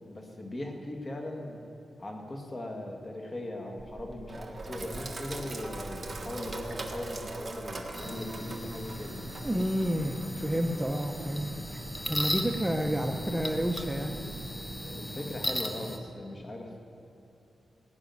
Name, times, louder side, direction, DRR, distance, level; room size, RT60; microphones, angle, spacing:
voice 1, 0.0-1.6 2.0-9.2 14.7-16.8, left 1 dB, 30° left, 2 dB, 1.9 m, -39 dB
Sink (filling or washing), 3.8-14.8, right 2 dB, 30° right, 1.4 m, -42 dB
sound 1, 7.9-16.0, equal, 15° left, 1.1 m, -37 dB
voice 2, 9.4-11.8 12.1-14.1, equal, 10° right, 2 dB, 0.8 m, -30 dB
17.5 x 6.2 x 9.5 m, 2.9 s
wide cardioid pair, 115°, 0 cm